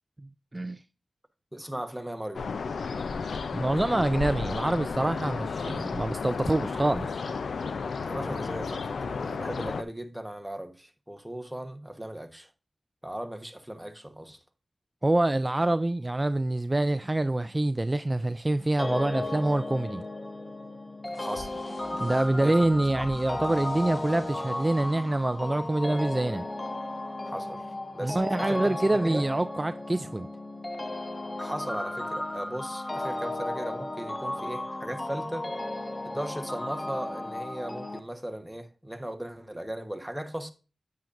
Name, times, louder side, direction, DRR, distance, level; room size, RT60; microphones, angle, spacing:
voice 1, 0.2-0.8 3.5-7.2 15.0-20.0 22.0-26.5 28.0-30.3, right 2 dB, 25° right, 0.4 m, -26 dB
voice 2, 1.5-2.5 8.0-12.5 13.0-14.4 21.0-21.6 22.4-22.6 23.0-23.1 27.2-27.7 27.9-28.8 29.0-29.2 31.4-35.5 36.0-40.5, right 1 dB, 5° right, 1.2 m, -37 dB
sound 1, 2.3-9.8, left 5 dB, 90° left, 0.5 m, -33 dB
sound 2, 18.8-38.0, left 1 dB, 25° left, 0.9 m, -35 dB
sound 3, 21.1-26.1, left 1 dB, 50° left, 5.1 m, -48 dB
9.3 x 8.4 x 2.6 m
cardioid pair, 50°, 0 cm